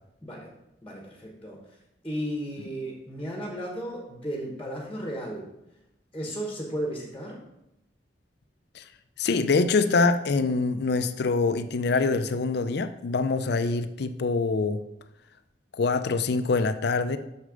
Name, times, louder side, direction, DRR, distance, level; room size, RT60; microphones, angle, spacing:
voice 1, 0.2-0.5 0.8-1.6 2.0-5.5 6.1-7.4, equal, 10° left, 0 dB, 1.3 m, -34 dB
voice 2, 9.2-14.8 15.8-17.2, left 4 dB, 65° left, 10 dB, 0.5 m, -24 dB
6.6 x 6.5 x 5.1 m, 0.87 s
head